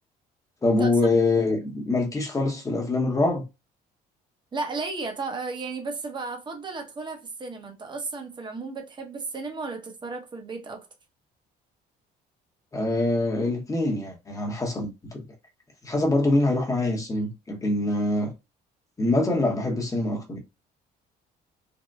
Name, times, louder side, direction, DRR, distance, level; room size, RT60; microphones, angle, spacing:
voice 1, 0.6-3.4 12.7-15.2 15.8-18.3 19.0-20.4, left 2 dB, 20° left, 0.9 m, -24 dB
voice 2, 4.5-10.9, right 3 dB, 25° right, 0.8 m, -34 dB
3.5 x 2.1 x 2.3 m
cardioid pair, 110°, 17 cm